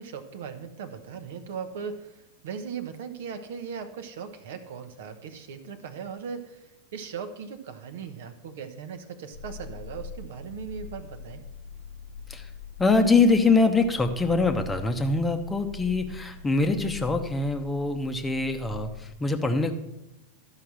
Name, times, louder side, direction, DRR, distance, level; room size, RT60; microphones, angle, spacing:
voice 1, 0.0-11.4, right 6 dB, 55° right, 9 dB, 0.9 m, -38 dB
sound 1, 9.3-19.2, left 4 dB, 65° left, 0.7 m, -43 dB
voice 2, 12.8-19.7, left 3 dB, 10° left, 6 dB, 0.9 m, -24 dB
12.5 x 5.7 x 6.1 m, 0.92 s
figure-of-eight pair, 90°, 0 cm